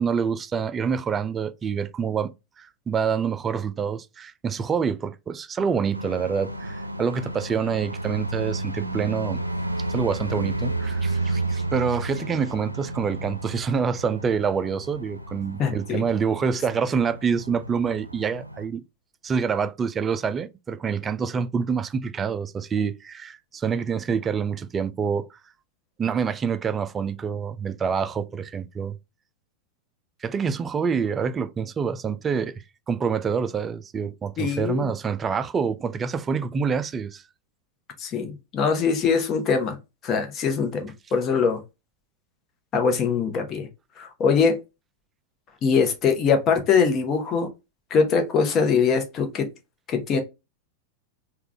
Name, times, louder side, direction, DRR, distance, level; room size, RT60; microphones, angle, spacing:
voice 1, 0.0-9.4 9.9-18.8 19.2-25.4 26.0-29.0 30.2-37.2, right 6 dB, 20° right, 0.3 m, -26 dB
sound 1, 5.9-18.6, right 2 dB, 85° right, 0.5 m, -32 dB
voice 2, 15.6-16.0 34.4-34.9 38.0-39.8 40.0-41.6 42.7-43.7 44.0-44.6 45.6-47.5 47.9-49.5 49.9-50.2, left 5 dB, 30° left, 0.9 m, -22 dB
3.6 x 2.3 x 3.2 m
figure-of-eight pair, 90°, 0 cm